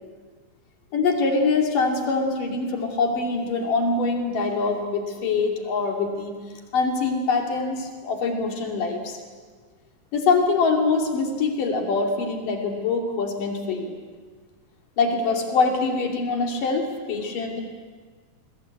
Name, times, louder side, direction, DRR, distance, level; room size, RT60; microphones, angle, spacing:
voice 1, 0.9-6.4 6.7-9.2 10.1-14.0 15.0-17.6, left 4 dB, 75° left, 2 dB, 4.3 m, -24 dB
29.0 x 22.0 x 8.4 m, 1.5 s
omnidirectional pair, 3.8 m